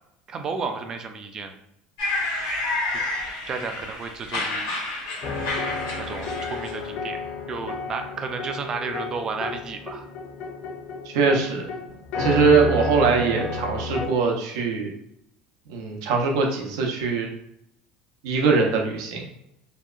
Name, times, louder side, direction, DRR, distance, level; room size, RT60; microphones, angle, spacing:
voice 1, 0.3-1.5 3.5-4.7 6.0-7.2 7.5-10.1, right 4 dB, 30° right, 6 dB, 0.3 m, -32 dB
sound 1, 2.0-6.9, left 2 dB, 85° left, 0.9 m, -30 dB
sound 2, 5.2-14.1, left 3 dB, 55° left, 0.5 m, -32 dB
voice 2, 11.0-11.6 12.2-14.9 15.7-17.3 18.2-19.3, right 4 dB, 85° right, 1 dB, 0.6 m, -22 dB
2.7 x 2.1 x 2.3 m, 0.78 s
cardioid pair, 145°, 2 cm